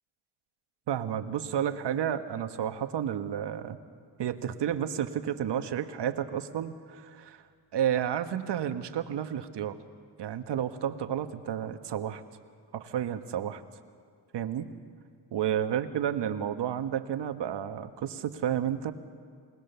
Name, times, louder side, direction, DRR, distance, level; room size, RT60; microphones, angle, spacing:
voice 1, 0.9-3.8 4.2-7.4 7.7-9.8 10.2-12.2 12.7-13.6 14.3-14.7 15.3-18.9, right 9 dB, 65° right, 9 dB, 1.5 m, -31 dB
28.5 x 19.5 x 7.0 m, 2.2 s
cardioid pair, 70°, 44 cm